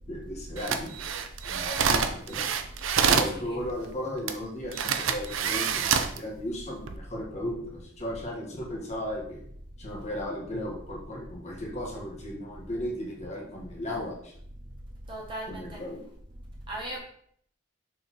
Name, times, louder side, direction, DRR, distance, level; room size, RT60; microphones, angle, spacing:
voice 1, 0.1-2.5 3.1-9.4 9.8-14.3 15.5-16.0, left 1 dB, 35° left, -3 dB, 1.7 m, -36 dB
sound 1, 0.6-3.4 4.3-4.4 4.7-6.2 6.7-7.0, right 6 dB, 75° right, 0.6 m, -26 dB
voice 2, 15.1-15.8 16.7-17.0, right 1 dB, 25° right, -4 dB, 1.6 m, -37 dB
6.4 x 4.2 x 4.4 m, 0.65 s
head